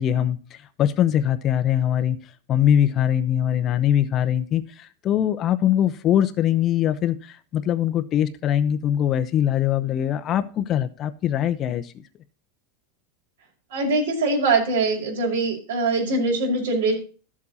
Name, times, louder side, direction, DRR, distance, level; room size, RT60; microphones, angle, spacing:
voice 1, 0.0-2.2 2.5-11.9, left 10 dB, 25° left, 0.8 m, -22 dB
voice 2, 13.7-16.9, right 3 dB, 80° right, 5.5 m, -22 dB
13.5 x 7.4 x 4.2 m
supercardioid pair, 175°, 0 cm